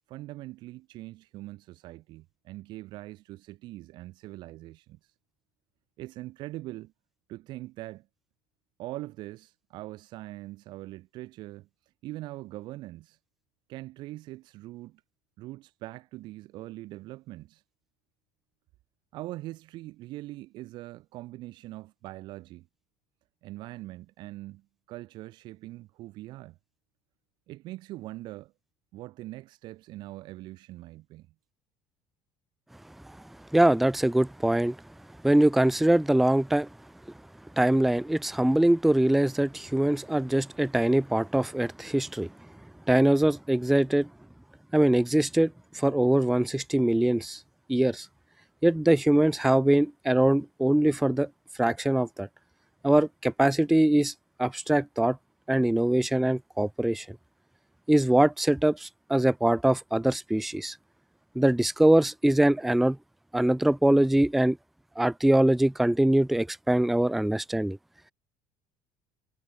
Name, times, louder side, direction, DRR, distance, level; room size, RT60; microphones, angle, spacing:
voice 1, 0.1-5.1 6.0-6.9 7.3-8.1 8.8-11.7 12.0-13.2 13.7-15.0 15.4-17.6 19.1-22.7 23.4-26.6 27.5-28.5 28.9-31.3, right 17 dB, 60° right, 1.7 m, -42 dB
voice 2, 33.5-34.8 35.2-36.7 37.6-42.3 42.9-44.1 44.7-47.4 47.7-48.1 48.6-51.3 51.6-52.3 52.8-54.1 54.4-55.2 55.5-57.1 57.9-60.8 61.4-63.0 63.3-64.6 65.0-67.8, right 1 dB, ahead, 0.4 m, -23 dB
cardioid pair, 125°, 9 cm